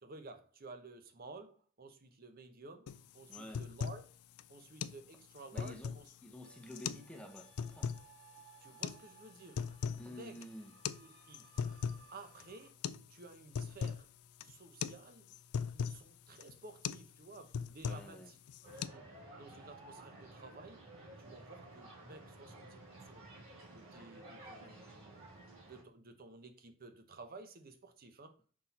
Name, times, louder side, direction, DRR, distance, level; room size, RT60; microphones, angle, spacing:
voice 1, 0.0-4.0 4.5-6.1 8.6-9.7 10.0-10.4 11.0-11.5 12.1-12.8 13.1-14.1 14.4-15.3 15.7-20.8 21.2-23.3 23.7-25.3 25.6-28.4, right 3 dB, 40° right, 0.7 m, -53 dB
sound 1, 2.9-3.0 3.3-4.1 4.4-4.5 4.8-5.0 5.4-6.1 6.7-7.1 7.4-8.0 8.8-9.0 9.4-10.1 10.3-10.5 10.8-11.0 11.3-12.1 12.4-12.5 12.8-13.1 13.3-14.0 14.4-14.6 14.8-15.0 15.3-16.0 16.4-16.6 16.8-17.1 17.3-18.2 18.5-18.9, left 6 dB, 90° left, 0.4 m, -38 dB
voice 2, 3.3-3.6 5.5-8.0 10.0-10.7 17.8-18.3, left 1 dB, 5° left, 0.8 m, -50 dB
sound 2, 6.4-12.7, right 6 dB, 60° right, 3.5 m, -63 dB
sound 3, 18.6-25.8, right 1 dB, 25° right, 2.8 m, -53 dB
6.2 x 4.1 x 4.1 m
head